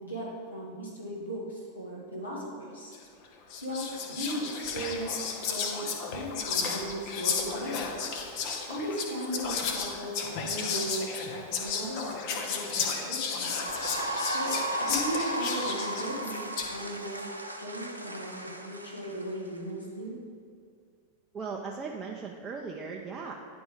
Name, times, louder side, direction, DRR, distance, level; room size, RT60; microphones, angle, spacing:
voice 1, 0.0-2.9 3.6-7.8 8.7-13.5 14.3-14.6 14.8-16.4 16.7-17.3 17.6-20.2, right 1 dB, 75° left, -5 dB, 1.9 m, -37 dB
Whispering, 2.9-3.1 3.5-16.8, left 5 dB, 45° left, 0.8 m, -33 dB
sound 1, 13.2-19.6, right 1 dB, 85° right, 0.5 m, -35 dB
voice 2, 21.3-23.3, right 5 dB, 20° right, -1 dB, 0.5 m, -37 dB
9.8 x 3.5 x 5.0 m, 2.2 s
figure-of-eight pair, 90°, 0 cm